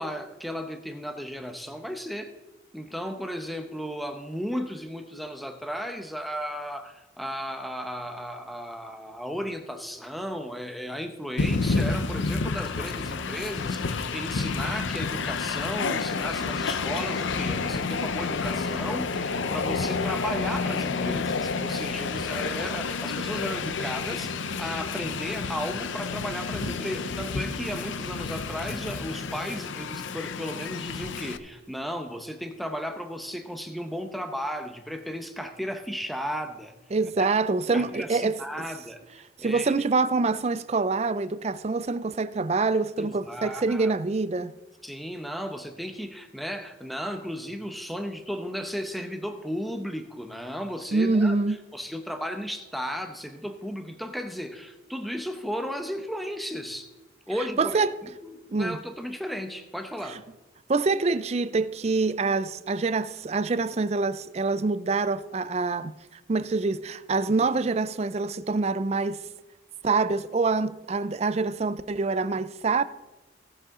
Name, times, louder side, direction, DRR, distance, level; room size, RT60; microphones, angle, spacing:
voice 1, 0.0-2.3 2.7-36.7 37.2-37.3 37.7-39.7 43.0-43.9 44.8-51.4 51.7-56.9 57.3-57.8 58.2-60.2, equal, ahead, 0.8 m, -35 dB
Train, 11.4-31.4, left 4 dB, 85° left, 0.6 m, -30 dB
voice 2, 36.9-38.4 39.4-44.5 50.9-51.6 57.6-57.9 58.5-58.8 60.1-60.2 60.7-65.9 66.3-69.2 69.8-72.8, right 3 dB, 35° right, 0.4 m, -25 dB
17.5 x 7.5 x 3.7 m
head